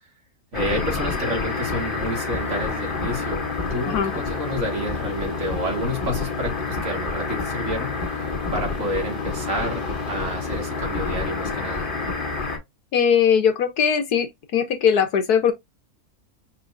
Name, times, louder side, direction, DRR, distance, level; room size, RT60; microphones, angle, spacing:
sound 1, 0.5-12.6, left 4 dB, 35° left, 2.3 m, -28 dB
voice 1, 0.5-11.9, equal, 55° right, 2.4 m, -29 dB
voice 2, 12.9-15.5, left 7 dB, 85° left, 1.6 m, -20 dB
5.4 x 3.5 x 2.6 m
omnidirectional pair, 1.6 m